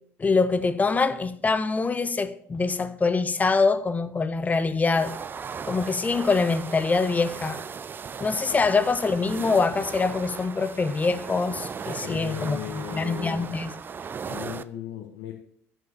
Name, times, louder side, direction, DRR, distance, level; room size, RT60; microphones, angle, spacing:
voice 1, 0.2-5.2 5.6-7.6 8.2-13.7, left 4 dB, 20° left, 0.7 m, -24 dB
sound 1, 4.9-14.6, right 6 dB, 25° right, 0.4 m, -37 dB
voice 2, 12.0-13.5 14.2-15.3, left 10 dB, 60° left, 0.9 m, -36 dB
5.6 x 5.4 x 6.6 m
hypercardioid pair, 65°, 7 cm